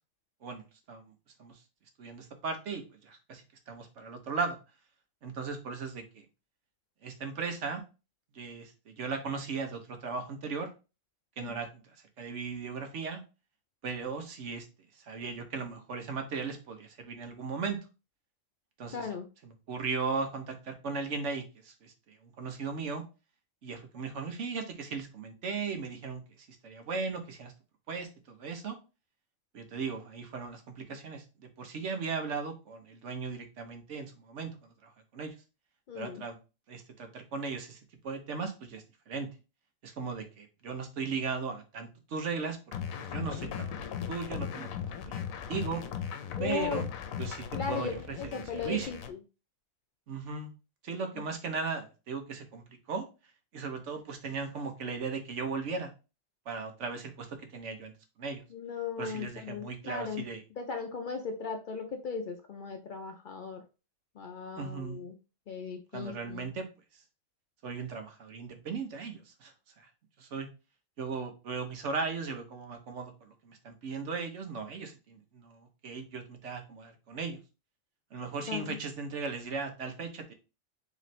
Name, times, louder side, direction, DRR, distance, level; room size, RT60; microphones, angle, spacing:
voice 1, 2.0-4.6 5.2-6.2 7.0-7.8 8.3-10.7 11.4-13.2 13.8-14.7 15.0-17.8 18.8-19.1 19.4-23.0 23.6-27.5 27.9-28.8 29.5-35.3 35.9-36.4 36.7-39.3 39.8-42.6 43.0-44.7 45.0-45.8 46.4-46.9 47.2-48.9 50.1-50.5 50.8-53.0 53.5-55.9 56.5-57.3 57.5-57.9 58.2-58.4 59.0-60.4 64.6-65.0 65.9-66.6 67.6-69.9 70.2-70.5 71.0-77.4 78.1-80.3, right 4 dB, 65° right, 6 dB, 1.1 m, -37 dB
voice 2, 18.9-19.3 35.9-36.2 46.4-46.9 47.5-49.2 51.1-51.2 58.5-60.2 60.6-63.6 64.2-65.1 65.5-66.5 78.5-78.8, left 5 dB, 70° left, 5 dB, 0.4 m, -37 dB
sound 1, 42.7-49.1, left 8 dB, 85° left, 1.0 m, -38 dB
3.1 x 3.1 x 4.1 m, 0.30 s
omnidirectional pair, 1.4 m